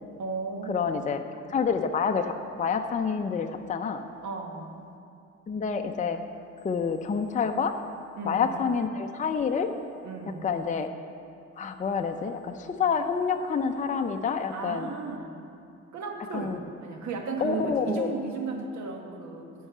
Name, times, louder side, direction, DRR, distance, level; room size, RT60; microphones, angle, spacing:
voice 1, 0.2-1.1 4.2-4.8 8.1-8.5 10.0-10.5 14.5-15.4 15.9-19.5, right 4 dB, 70° right, 2 dB, 1.4 m, -35 dB
voice 2, 0.7-1.2 1.5-4.0 5.5-6.2 6.6-7.7 8.2-9.7 10.4-10.9 11.6-14.9 16.3-16.6 17.4-18.1, left 6 dB, 25° left, 5 dB, 0.5 m, -28 dB
11.0 x 5.5 x 6.8 m, 2.6 s
cardioid pair, 90°, 30 cm